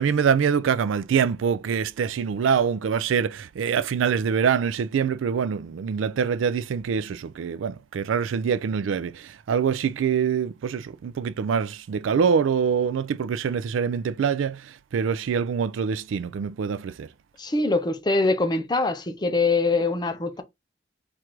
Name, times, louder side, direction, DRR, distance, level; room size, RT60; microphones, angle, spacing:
voice 1, 0.0-17.1, right 6 dB, 85° right, 0.4 m, -25 dB
voice 2, 17.4-20.4, left 3 dB, 20° left, 0.6 m, -23 dB
4.6 x 2.5 x 4.4 m
head